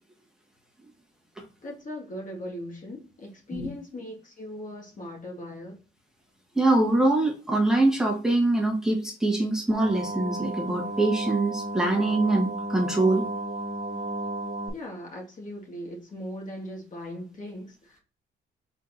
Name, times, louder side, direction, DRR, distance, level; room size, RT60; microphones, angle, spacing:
voice 1, 1.6-5.8 14.7-18.0, left 1 dB, 40° left, 2.0 m, -39 dB
voice 2, 6.5-13.2, right 2 dB, 5° right, 1.6 m, -24 dB
sound 1, 9.7-14.7, right 2 dB, 25° right, 1.0 m, -33 dB
4.3 x 4.2 x 2.7 m
cardioid pair, 90°, 20 cm